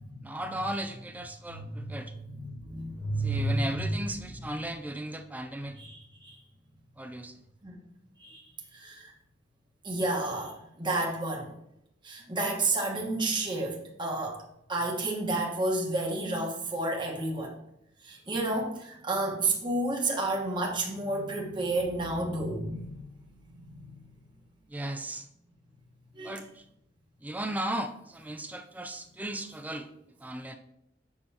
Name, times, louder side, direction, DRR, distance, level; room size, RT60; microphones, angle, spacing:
voice 1, 0.2-2.1 3.2-5.8 7.0-7.4 24.7-25.3 26.2-26.6 27.2-29.9 30.2-30.6, right 1 dB, 10° right, 7 dB, 0.4 m, -36 dB
voice 2, 1.5-1.9 2.2-4.7 5.8-6.4 7.6-7.8 8.2-9.1 9.8-11.5 12.0-14.4 14.7-17.6 18.0-23.0 23.3-24.1 26.1-26.4, right 2 dB, 25° right, -1 dB, 1.2 m, -31 dB
7.7 x 6.0 x 2.8 m, 0.79 s
head